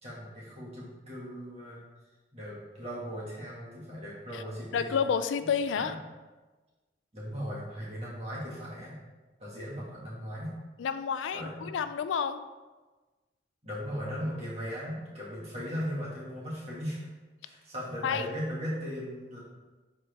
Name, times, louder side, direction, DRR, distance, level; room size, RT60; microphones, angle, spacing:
voice 1, 0.0-1.8 2.3-5.0 5.8-6.0 7.1-9.0 9.4-10.5 11.3-11.7 13.6-17.1 17.4-19.4, equal, 35° right, -6 dB, 2.0 m, -37 dB
voice 2, 4.7-5.9 10.8-12.4 18.0-18.2, left 7 dB, 85° left, 11 dB, 0.4 m, -30 dB
7.4 x 4.3 x 3.5 m, 1.2 s
head